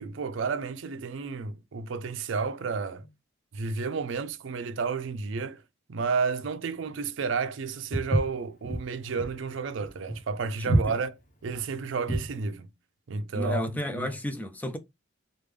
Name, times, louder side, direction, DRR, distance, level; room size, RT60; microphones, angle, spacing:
voice 1, 0.0-3.1 3.5-5.6 5.9-11.1 11.4-12.7 13.1-14.1, right 4 dB, 70° right, 0.4 m, -31 dB
Walk footsteps, 7.9-12.4, right 1 dB, 40° left, 0.8 m, -28 dB
voice 2, 13.3-14.8, left 1 dB, 10° left, 0.4 m, -32 dB
3.3 x 2.1 x 3.2 m
head